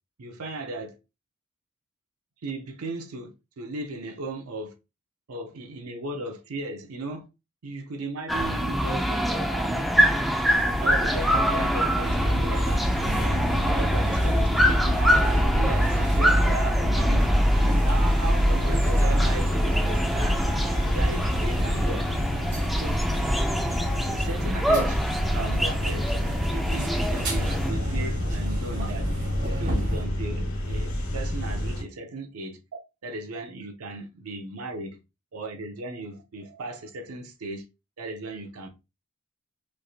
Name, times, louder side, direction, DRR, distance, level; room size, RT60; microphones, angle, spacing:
voice 1, 0.2-1.0 2.4-4.7 5.3-7.3 7.6-9.9 10.8-12.9 13.2-20.4 20.8-22.0 22.7-23.0 24.0-25.0 25.3-26.1 26.5-29.1 29.4-32.6 33.0-35.0 35.3-37.6 38.0-38.7, right 2 dB, 85° right, 0.6 m, -36 dB
sound 1, 8.3-27.7, equal, ahead, 0.3 m, -24 dB
sound 2, 10.5-30.0, equal, 50° right, 1.6 m, -32 dB
sound 3, 12.0-31.8, equal, 75° left, 1.2 m, -30 dB
3.1 x 2.7 x 2.4 m
head